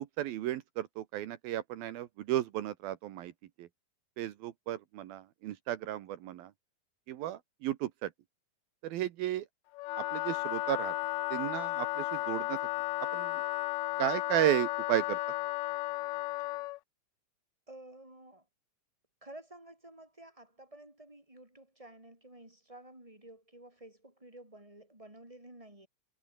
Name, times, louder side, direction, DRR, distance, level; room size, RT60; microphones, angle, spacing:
voice 1, 0.0-3.3 3.6-3.7 4.2-6.5 7.1-8.1 8.8-9.5 10.0-10.9 11.3-12.6 13.1-13.4 14.0-15.2, right 13 dB, 75° right, 3.0 m, -34 dB
Wind instrument woodwind instrument, 9.7-16.8, left 21 dB, 90° left, 2.6 m, -34 dB
voice 2, 17.7-18.5 19.2-25.9, right 1 dB, 10° right, 7.0 m, -52 dB
omnidirectional pair, 4.3 m